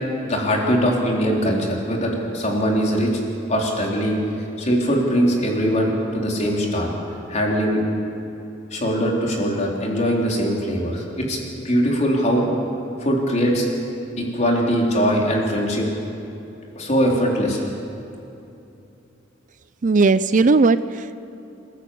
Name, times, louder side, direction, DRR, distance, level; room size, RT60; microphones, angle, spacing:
voice 1, 0.3-3.1 3.5-4.2 4.6-6.9 7.3-7.8 8.7-11.4 11.6-12.5 13.0-13.6 14.2-15.9 16.8-17.6, equal, 35° left, -1 dB, 4.0 m, -21 dB
voice 2, 19.8-21.2, right 3 dB, 40° right, 14 dB, 0.5 m, -17 dB
28.0 x 13.5 x 8.4 m, 2.8 s
head